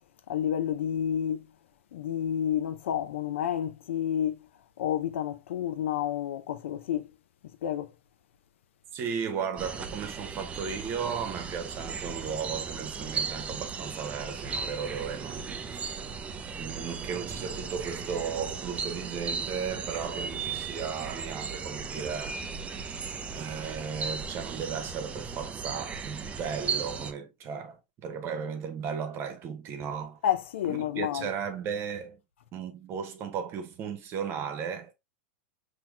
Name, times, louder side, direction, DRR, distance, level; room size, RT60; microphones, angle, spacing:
voice 1, 0.3-1.5 1.9-4.4 4.8-7.1 7.6-7.9 30.2-31.3, left 10 dB, 80° left, 0.6 m, -30 dB
voice 2, 8.9-16.0 16.6-22.4 23.3-30.2 30.7-32.2 32.5-34.9, right 7 dB, 40° right, 1.0 m, -35 dB
sound 1, 9.6-27.1, right 5 dB, 20° right, 0.4 m, -36 dB
5.8 x 2.9 x 2.3 m
hypercardioid pair, 125°, 7 cm